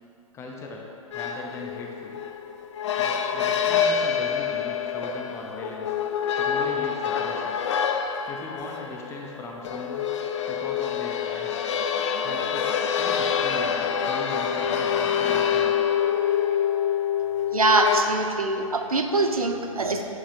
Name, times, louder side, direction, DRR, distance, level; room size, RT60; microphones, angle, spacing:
voice 1, 0.3-2.2 3.0-5.9 6.4-7.6 8.3-10.1 10.5-11.7 12.2-15.8, left 3 dB, 15° left, 0 dB, 0.6 m, -39 dB
sound 1, 1.1-18.0, left 8 dB, 55° left, 0.4 m, -26 dB
voice 2, 17.5-20.0, right 2 dB, 90° right, 4 dB, 0.6 m, -23 dB
7.2 x 5.6 x 2.6 m, 2.6 s
figure-of-eight pair, 120°, 18 cm